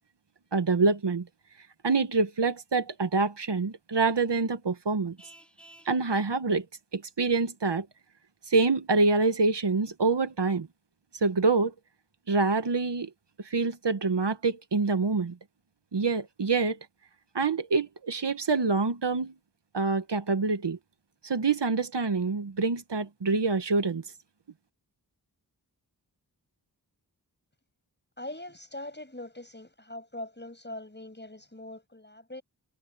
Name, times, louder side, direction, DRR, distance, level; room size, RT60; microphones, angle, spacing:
voice 1, 0.5-1.3 1.8-5.2 5.8-6.6 6.9-7.9 8.5-10.7 11.2-11.7 12.3-13.1 13.4-15.4 15.9-16.8 17.3-19.3 19.7-20.8 21.2-24.0, right 4 dB, 80° right, 1.4 m, -26 dB
Vehicle horn car horn honking, 5.2-6.0, right 1 dB, 5° left, 3.7 m, -53 dB
voice 2, 28.2-32.4, left 1 dB, 25° left, 7.1 m, -42 dB
wide cardioid pair, 50°, 42 cm